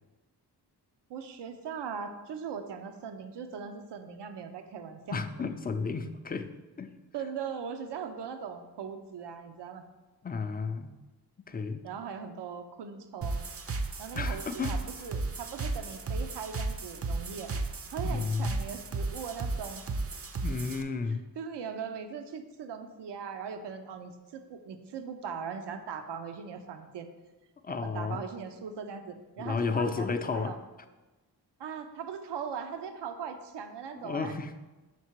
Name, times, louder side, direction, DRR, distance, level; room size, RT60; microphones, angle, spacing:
voice 1, 1.1-5.2 7.1-9.8 11.8-13.4 14.0-17.5 17.9-19.8 21.1-27.1 27.7-30.6 31.6-34.4, right 6 dB, 80° right, 8 dB, 0.6 m, -40 dB
voice 2, 5.1-6.5 6.8-6.9 10.2-10.9 11.5-11.8 14.1-14.7 18.0-18.6 20.4-21.2 27.6-28.2 29.4-30.5 34.0-34.5, left 4 dB, 25° left, 8 dB, 0.4 m, -32 dB
sound 1, 13.2-20.8, right 3 dB, 35° right, 0.5 m, -34 dB
6.0 x 3.6 x 4.5 m, 1.1 s
cardioid pair, 70°, 41 cm